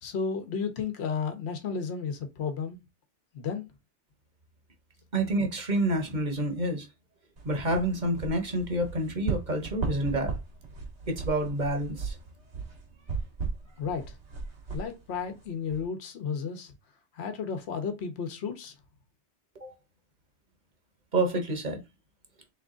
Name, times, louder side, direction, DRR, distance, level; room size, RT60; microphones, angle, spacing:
voice 1, 0.0-2.8 3.3-3.6 13.8-14.2 14.7-16.7 17.1-18.7, left 6 dB, 65° left, 1.1 m, -33 dB
voice 2, 5.1-6.9 7.4-10.4 11.1-12.2 19.5-19.7 21.1-21.8, right 1 dB, 40° right, 1.1 m, -28 dB
sound 1, 7.4-15.8, right 4 dB, 70° right, 1.4 m, -37 dB
3.5 x 3.2 x 3.7 m
omnidirectional pair, 1.2 m